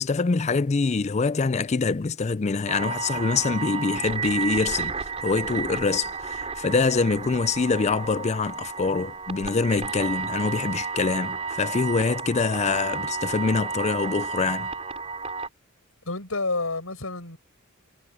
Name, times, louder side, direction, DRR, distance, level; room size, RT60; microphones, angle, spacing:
voice 1, 0.0-14.7, left 4 dB, 30° left, 0.4 m, -25 dB
sound 1, 2.7-15.5, right 5 dB, 30° right, 3.7 m, -32 dB
voice 2, 16.1-17.4, left 3 dB, 70° left, 7.2 m, -29 dB
head